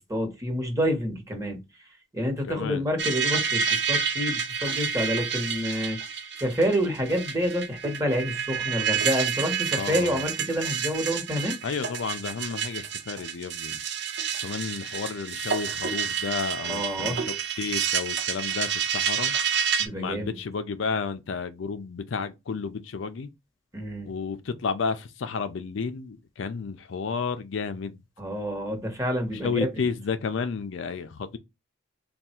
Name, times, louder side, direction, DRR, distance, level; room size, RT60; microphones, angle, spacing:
voice 1, 0.1-1.6 2.1-11.5 16.6-17.2 19.8-20.4 23.7-24.1 28.2-29.7, equal, 15° right, 1.1 m, -28 dB
voice 2, 2.5-2.9 9.7-10.3 11.6-13.8 14.4-19.3 20.0-23.3 24.1-28.0 29.4-31.4, left 5 dB, 65° left, 0.4 m, -32 dB
sound 1, 3.0-19.9, right 7 dB, 55° right, 0.6 m, -29 dB
3.5 x 2.3 x 4.2 m
head